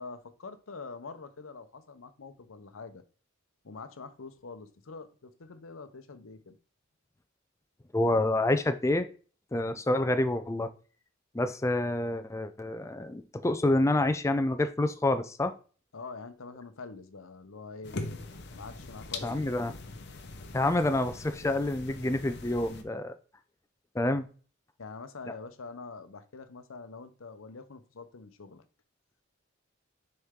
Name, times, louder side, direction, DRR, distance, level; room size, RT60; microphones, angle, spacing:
voice 1, 0.0-3.0 3.6-6.6 15.9-18.0 18.5-19.8 24.8-28.6, left 4 dB, 85° left, 0.7 m, -45 dB
voice 2, 7.9-9.1 9.5-10.7 11.3-15.5 19.2-19.7 20.5-23.1 23.9-24.3, left 2 dB, 15° left, 0.4 m, -27 dB
sound 1, 17.8-22.8, left 3 dB, 55° left, 0.9 m, -42 dB
6.5 x 4.4 x 3.6 m
head